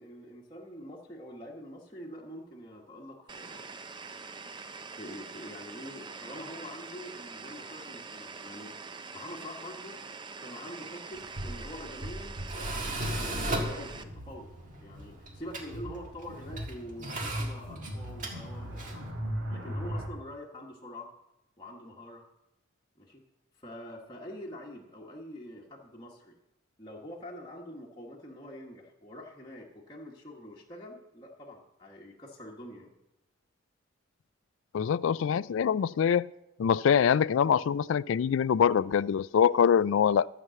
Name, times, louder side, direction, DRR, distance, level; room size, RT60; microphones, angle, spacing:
voice 1, 0.0-3.7 5.0-8.7 9.1-10.0 10.4-12.4 13.0-14.5 14.8-19.0 19.5-21.1 21.6-22.2 23.0-23.2 23.6-26.3 26.8-32.9, equal, 20° left, -3 dB, 1.3 m, -45 dB
sound 1, 3.3-14.0, right 4 dB, 20° right, 0.5 m, -44 dB
Tools, 11.1-19.1, right 1 dB, 40° right, 1.7 m, -37 dB
sound 2, 13.9-20.1, equal, 85° right, 4.2 m, -39 dB
voice 2, 34.7-36.3 36.6-40.3, left 7 dB, 70° left, 19 dB, 0.3 m, -24 dB
13.0 x 6.0 x 7.5 m, 0.91 s
head